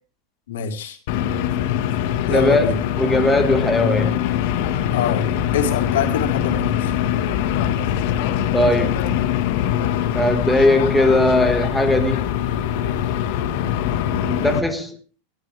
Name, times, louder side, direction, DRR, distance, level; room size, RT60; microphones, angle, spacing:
voice 1, 0.5-1.0 2.3-2.8 4.9-5.3 5.5-6.9, left 7 dB, 85° left, 4.1 m, -24 dB
sound 1, 1.1-14.6, left 10 dB, 55° left, 1.5 m, -22 dB
voice 2, 2.3-2.7 3.0-4.2 8.5-9.1 10.1-12.3 14.2-15.0, left 1 dB, ahead, 1.7 m, -19 dB
19.5 x 13.0 x 3.4 m
supercardioid pair, 155°, 0 cm